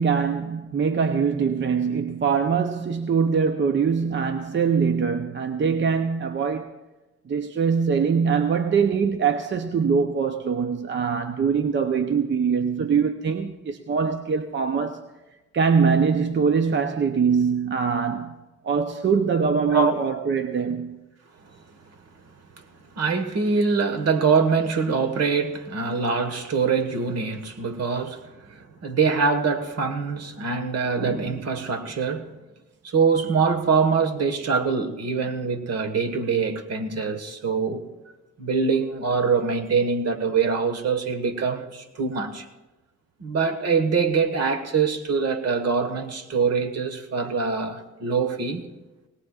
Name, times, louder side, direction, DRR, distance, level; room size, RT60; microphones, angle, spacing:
voice 1, 0.0-6.7 7.3-15.1 15.5-18.3 18.6-21.0, right 6 dB, 40° right, 0.7 m, -23 dB
voice 2, 22.9-32.3 32.8-37.8 38.4-42.5 43.2-48.6, right 5 dB, 55° right, 1.6 m, -24 dB
20.5 x 18.0 x 2.4 m
cardioid pair, 90°, 30 cm